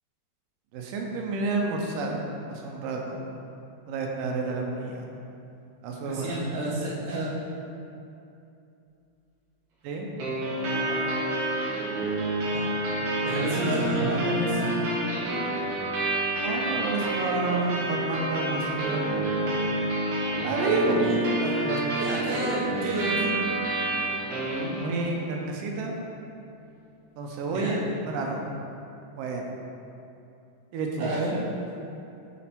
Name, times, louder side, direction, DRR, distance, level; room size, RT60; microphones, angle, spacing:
voice 1, 0.7-2.2 2.5-3.2 3.9-5.1 5.8-6.4 9.8-10.1 10.6-11.1 16.4-19.8 20.4-21.1 21.4-21.8 24.8-26.0 27.2-27.8 28.1-28.4 29.2-29.5 30.7-31.1, right 3 dB, 85° right, 1 dB, 2.3 m, -30 dB
voice 2, 6.0-7.3 12.4-12.6 13.2-14.7 21.0-21.2 21.4-21.5 22.0-23.4 27.5-27.8 31.0-31.4, right 2 dB, 50° right, -8 dB, 1.4 m, -30 dB
sound 1, 10.2-25.2, right 1 dB, 65° right, 2.5 m, -28 dB
7.7 x 4.0 x 4.4 m, 2.7 s
omnidirectional pair, 3.8 m